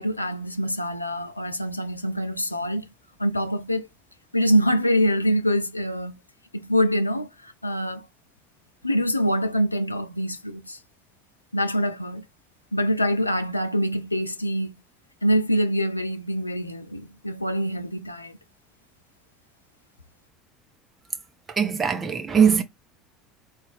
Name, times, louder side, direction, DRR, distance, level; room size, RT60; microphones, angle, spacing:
voice 1, 0.0-2.8 3.2-3.9 4.3-6.2 6.5-8.1 8.8-10.8 11.5-12.2 12.7-14.7 15.2-18.4, equal, 90° left, 0.4 m, -25 dB
voice 2, 21.5-22.6, right 7 dB, 25° right, 0.6 m, -20 dB
3.9 x 2.3 x 3.3 m
figure-of-eight pair, 70°, 0 cm